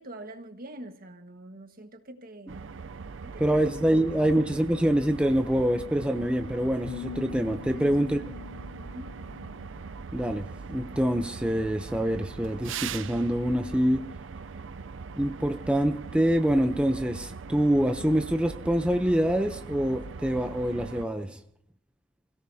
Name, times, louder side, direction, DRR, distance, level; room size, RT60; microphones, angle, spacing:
voice 1, 0.0-2.6 3.2-3.6 3.9-4.3 7.7-9.2, right 1 dB, 50° right, 7 dB, 1.5 m, -45 dB
sound 1, 2.5-21.0, right 5 dB, 90° right, 0.6 m, -41 dB
voice 2, 3.4-8.2 10.1-14.1 15.2-21.4, equal, 5° right, 6 dB, 0.6 m, -25 dB
sound 2, 6.9-10.0, left 7 dB, 70° left, 0.7 m, -43 dB
29.5 x 17.0 x 2.8 m, 0.62 s
head